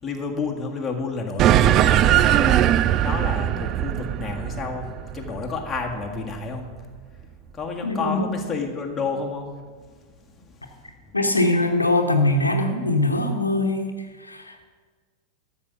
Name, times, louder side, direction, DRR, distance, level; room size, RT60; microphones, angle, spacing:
voice 1, 0.0-10.9, left 4 dB, 15° left, 0 dB, 1.8 m, -31 dB
sound 1, 1.4-6.2, right 12 dB, 35° right, 0.4 m, -20 dB
voice 2, 7.8-8.4 11.1-14.6, left 2 dB, 80° left, 4 dB, 1.0 m, -22 dB
12.5 x 6.5 x 7.2 m, 1.5 s
figure-of-eight pair, 90°, 0 cm